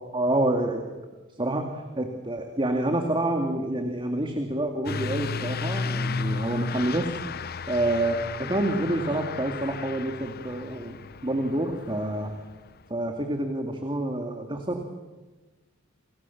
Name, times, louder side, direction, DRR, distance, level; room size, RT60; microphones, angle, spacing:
voice 1, 0.1-0.9 1.3-7.1 7.7-11.0 11.2-12.3 12.9-14.8, right 1 dB, 25° right, 4 dB, 2.3 m, -27 dB
Truck / Accelerating revving vroom, 4.8-12.8, left 4 dB, 50° left, 0.8 m, -34 dB
29.0 x 26.5 x 7.2 m, 1.2 s
head